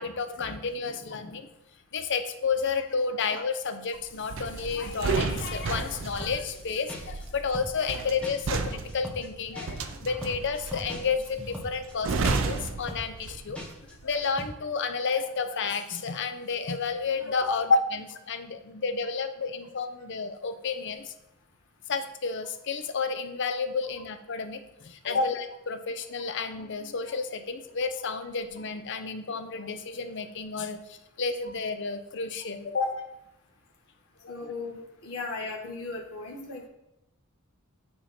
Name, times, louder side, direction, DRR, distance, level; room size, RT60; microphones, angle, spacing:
voice 1, 0.0-1.5 1.9-13.6 14.0-17.7 17.9-21.1 21.9-25.3 25.7-32.8 34.2-34.3, left 5 dB, 55° left, 9 dB, 0.6 m, -31 dB
sound 1, 4.3-13.6 13.9-14.2, right 4 dB, 60° right, 0.5 m, -32 dB
sound 2, 5.9-6.6 6.9-7.3 7.5-7.9 8.2-8.6 8.9-9.3 9.5-11.9 12.2-12.6 12.9-13.3 13.5-13.9 14.2-14.5, left 1 dB, 5° left, 1.1 m, -40 dB
voice 2, 34.3-36.7, left 3 dB, 75° left, -2 dB, 1.3 m, -34 dB
8.6 x 3.8 x 4.3 m, 0.89 s
head